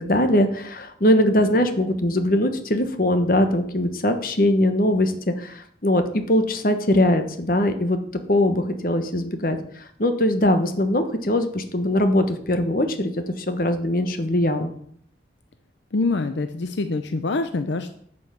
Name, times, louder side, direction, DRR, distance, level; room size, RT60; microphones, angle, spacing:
voice 1, 0.0-8.0 8.3-14.7, left 1 dB, 50° left, 7 dB, 1.2 m, -21 dB
voice 2, 15.9-17.9, left 3 dB, 80° left, 9 dB, 0.6 m, -25 dB
10.5 x 5.5 x 6.9 m, 0.64 s
head